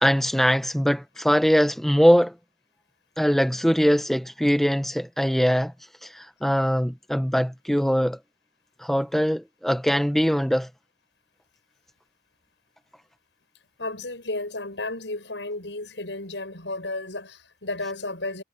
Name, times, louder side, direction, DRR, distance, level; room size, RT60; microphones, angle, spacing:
voice 1, 0.0-2.3 3.2-5.7 6.0-8.2 8.8-10.7, equal, ahead, 1.0 m, -22 dB
voice 2, 13.8-18.4, left 2 dB, 85° left, 7.6 m, -33 dB
head